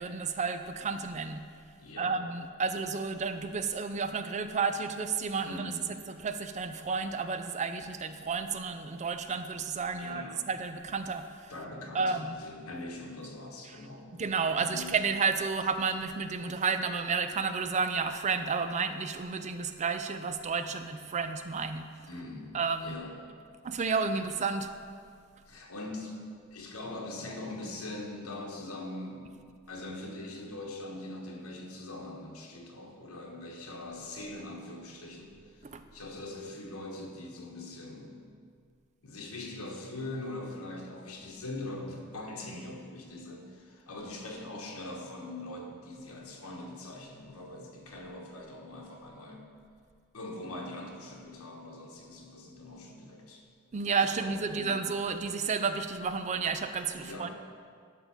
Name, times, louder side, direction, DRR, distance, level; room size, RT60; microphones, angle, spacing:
voice 1, 0.0-1.5 2.0-11.6 11.9-12.4 13.6-13.9 14.2-21.9 22.5-23.0 23.6-24.7 35.6-35.8 53.7-57.3, right 5 dB, 30° right, 9 dB, 0.4 m, -31 dB
voice 2, 1.8-2.2 5.4-5.8 10.0-10.5 11.5-14.1 14.6-14.9 22.1-22.5 22.8-23.1 25.5-26.2 26.5-29.4 29.7-35.6 35.9-38.3 39.0-49.4 50.1-53.4 54.1-54.8 57.0-57.3, left 2 dB, 75° left, 0 dB, 1.4 m, -42 dB
11.0 x 3.7 x 7.1 m, 2.1 s
head